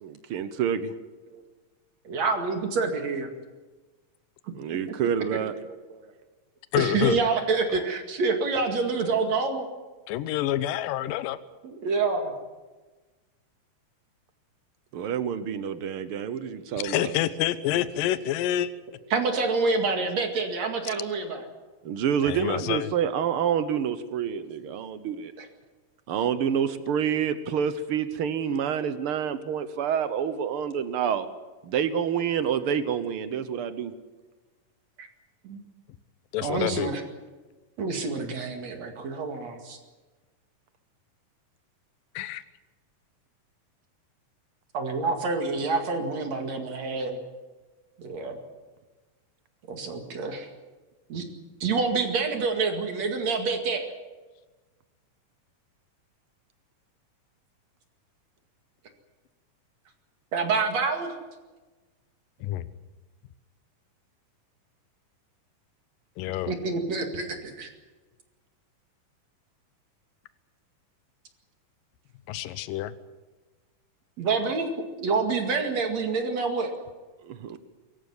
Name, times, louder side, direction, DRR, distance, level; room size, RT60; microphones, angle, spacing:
voice 1, 0.0-0.9 4.5-5.5 14.9-17.1 21.8-25.3 26.1-31.3 31.7-33.9 77.3-77.6, right 8 dB, 70° right, 12 dB, 1.3 m, -28 dB
voice 2, 2.0-3.3 5.3-6.1 6.8-9.7 11.6-12.3 15.7-16.0 16.2-16.5 19.1-21.4 25.4-25.5 35.0-35.1 35.4-35.6 36.4-37.0 37.8-39.8 44.7-47.2 48.0-48.4 49.7-50.5 51.1-51.2 51.6-53.9 60.3-61.1 66.5-67.7 74.2-74.7 75.0-76.7, right 4 dB, 55° right, 5 dB, 3.2 m, -27 dB
voice 3, 6.7-7.2 10.1-11.4 16.8-18.7 22.2-22.9 36.3-36.9 42.2-42.4 62.4-62.7 66.2-66.5 72.3-72.9, left 12 dB, 85° left, 14 dB, 2.5 m, -27 dB
24.0 x 14.5 x 9.7 m, 1.2 s
omnidirectional pair, 3.9 m